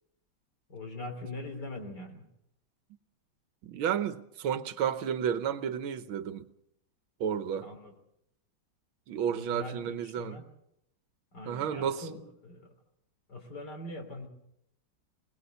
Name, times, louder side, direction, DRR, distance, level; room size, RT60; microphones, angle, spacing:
voice 1, 0.7-2.3 7.6-7.9 9.3-10.4 11.3-12.7 13.3-14.3, left 2 dB, 55° left, 3.7 m, -42 dB
voice 2, 3.6-6.5 7.2-7.7 9.1-10.4 11.5-12.1, right 8 dB, 80° right, 1.8 m, -32 dB
21.5 x 19.5 x 6.7 m
omnidirectional pair, 2.2 m